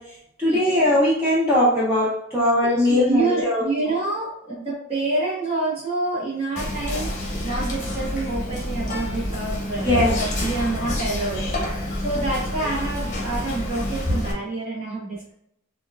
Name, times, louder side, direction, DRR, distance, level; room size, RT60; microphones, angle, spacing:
voice 1, 0.0-3.7 9.8-10.1, left 1 dB, 10° right, -8 dB, 0.7 m, -20 dB
voice 2, 2.6-7.1 7.4-11.5 12.0-15.3, right 2 dB, 30° right, -9 dB, 1.1 m, -27 dB
Whispering, 6.6-14.3, left 1 dB, 35° left, 0.8 m, -28 dB
5.9 x 2.4 x 2.4 m, 0.76 s
head